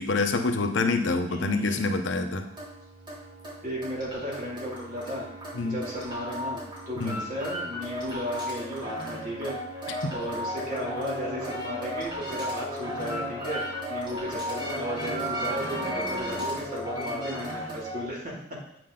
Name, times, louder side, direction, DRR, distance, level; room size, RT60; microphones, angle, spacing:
voice 1, 0.0-2.5 5.5-5.8 7.0-7.2 10.0-10.1, left 3 dB, 70° left, 6 dB, 0.8 m, -26 dB
sound 1, 0.7-18.1, equal, 25° right, 3.3 m, -35 dB
voice 2, 1.2-1.9 3.6-5.3 5.6-13.6 13.9-18.6, equal, 45° right, -4 dB, 2.6 m, -35 dB
8.5 x 6.1 x 3.8 m, 0.72 s
head